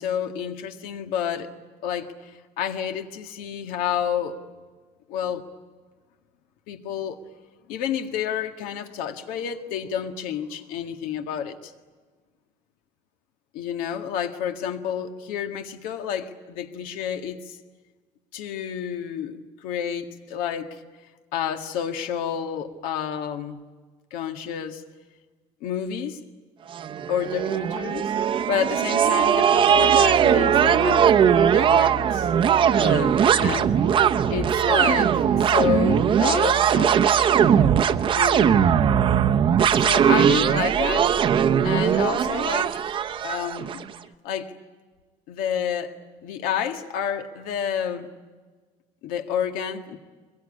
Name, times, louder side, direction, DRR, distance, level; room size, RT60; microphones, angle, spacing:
voice 1, 0.0-1.5 1.8-4.4 5.1-5.4 6.7-7.2 7.7-11.7 13.5-17.6 18.3-20.8 21.3-23.6 24.1-24.8 25.6-26.2 27.1-28.1 28.5-32.3 32.8-33.7 34.3-37.3 38.1-38.6 39.8-41.1 41.6-42.8 43.2-43.8 44.2-44.5 45.3-45.9 46.2-48.1 49.0-50.0, left 8 dB, 90° left, 6 dB, 1.9 m, -29 dB
sound 1, 26.8-43.8, right 8 dB, 35° right, 0.7 m, -20 dB
24.0 x 22.0 x 9.9 m, 1.4 s
cardioid pair, 160°, 14 cm